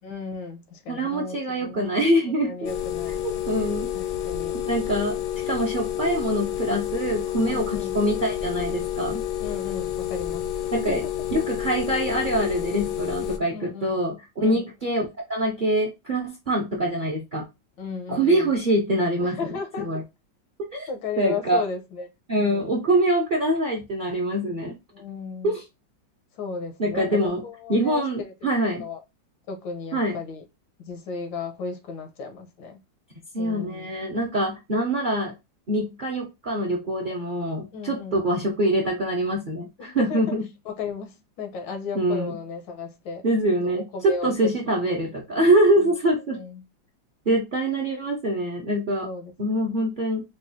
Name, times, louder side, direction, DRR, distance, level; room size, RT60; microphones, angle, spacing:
voice 1, 0.0-2.1 2.4-3.2 3.9-4.6 7.5-8.0 9.4-11.0 13.5-14.0 14.4-14.6 17.8-18.5 19.2-19.9 20.9-22.7 24.9-25.5 26.4-28.3 28.8-29.0 29.5-30.4 30.8-32.8 33.4-33.9 37.7-38.2 39.8-40.2 40.6-44.5 44.9-45.0 45.8-45.9 46.4-46.6 49.0-49.7, left 4 dB, 85° left, 1.6 m, -35 dB
voice 2, 0.9-2.7 3.2-3.9 4.5-5.1 5.5-9.2 10.7-11.0 11.3-15.0 15.3-17.4 18.1-20.0 20.7-20.9 21.2-21.6 22.3-24.8 25.4-25.6 26.8-27.4 27.7-28.8 29.9-30.1 33.3-35.3 35.7-40.4 41.9-42.4 43.2-46.4 47.3-49.1 49.4-50.2, right 1 dB, 60° right, 0.5 m, -24 dB
sound 1, 2.6-13.4, left 11 dB, 70° left, 0.9 m, -29 dB
4.6 x 2.3 x 2.6 m
omnidirectional pair, 2.0 m